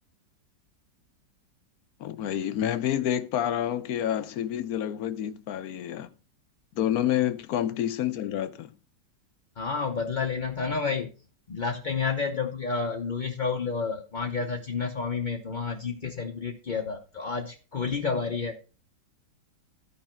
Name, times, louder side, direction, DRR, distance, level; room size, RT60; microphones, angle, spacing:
voice 1, 2.0-6.1 6.8-8.7, left 11 dB, 65° left, 1.1 m, -28 dB
voice 2, 9.6-11.1 11.5-18.6, left 5 dB, 40° left, 0.7 m, -30 dB
13.0 x 5.2 x 4.4 m
omnidirectional pair, 1.9 m